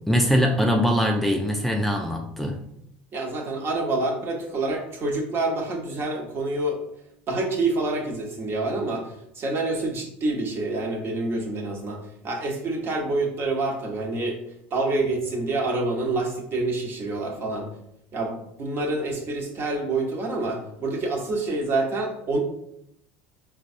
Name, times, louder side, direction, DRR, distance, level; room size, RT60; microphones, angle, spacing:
voice 1, 0.1-2.6, equal, 5° left, 1 dB, 0.4 m, -22 dB
voice 2, 3.1-6.8 7.3-14.4 14.7-17.7 18.1-22.4, right 2 dB, 40° right, 1 dB, 1.0 m, -27 dB
4.5 x 2.2 x 2.6 m, 0.75 s
hypercardioid pair, 80°, 6 cm